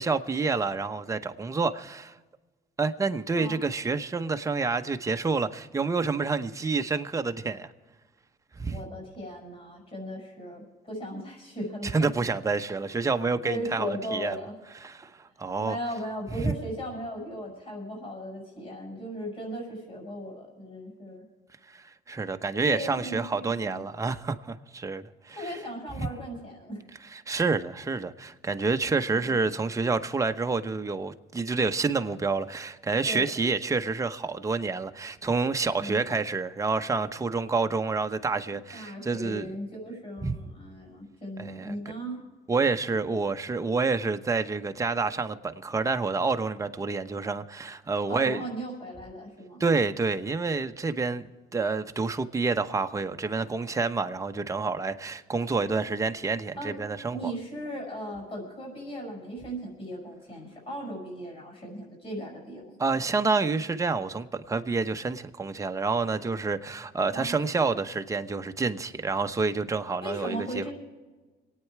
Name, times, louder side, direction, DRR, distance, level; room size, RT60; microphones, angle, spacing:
voice 1, 0.0-2.1 2.8-7.7 8.6-8.8 11.9-14.4 14.8-15.8 16.4-16.5 21.7-25.6 26.0-26.1 27.1-39.5 40.2-40.3 41.4-41.8 42.5-48.5 49.6-57.3 62.8-70.6, right 4 dB, 20° right, 0.9 m, -28 dB
voice 2, 8.7-12.1 13.4-14.5 15.6-21.3 22.7-23.8 25.3-26.8 29.0-29.3 33.0-33.3 35.8-36.0 38.5-42.2 48.1-49.6 56.6-56.8 57.1-63.0 67.1-67.4 70.0-70.7, equal, 35° left, 6.4 m, -37 dB
26.5 x 9.3 x 4.7 m
cardioid pair, 110°, 17 cm